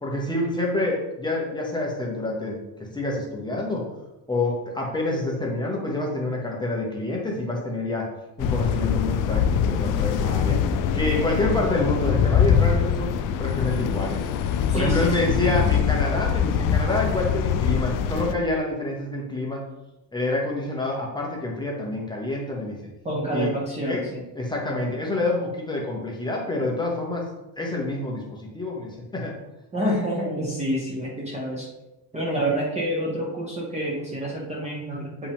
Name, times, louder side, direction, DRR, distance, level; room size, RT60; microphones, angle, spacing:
voice 1, 0.0-2.6 2.9-3.9 4.3-8.0 8.4-10.6 10.9-13.1 13.4-14.2 14.7-19.6 20.1-22.7 23.3-23.5 23.8-24.0 24.3-27.2 27.6-29.3, left 2 dB, 10° left, -2 dB, 1.0 m, -27 dB
sound 1, 8.4-18.3, left 8 dB, 50° left, 0.5 m, -23 dB
voice 2, 14.7-15.3 23.0-24.2 29.7-31.7 32.1-35.3, right 1 dB, 15° right, -4 dB, 1.2 m, -28 dB
8.3 x 5.1 x 3.6 m, 0.97 s
cardioid pair, 165°, 43 cm